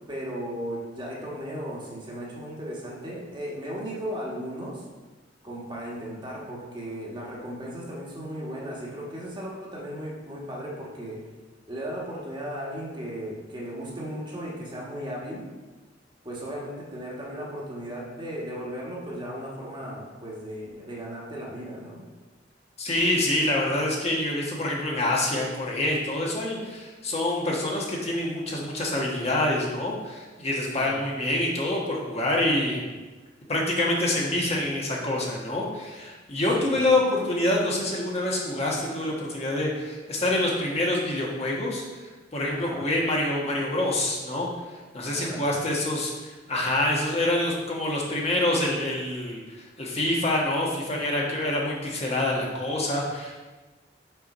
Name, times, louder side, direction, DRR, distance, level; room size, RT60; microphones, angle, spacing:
voice 1, 0.1-4.8 5.4-11.2 11.7-15.5 16.2-22.1 30.7-31.0 36.6-36.8 42.5-42.9 45.1-45.5, equal, 25° right, -4 dB, 1.5 m, -36 dB
voice 2, 22.8-32.8 33.5-53.4, left 1 dB, 35° left, -3 dB, 1.2 m, -26 dB
5.8 x 4.5 x 5.4 m, 1.2 s
head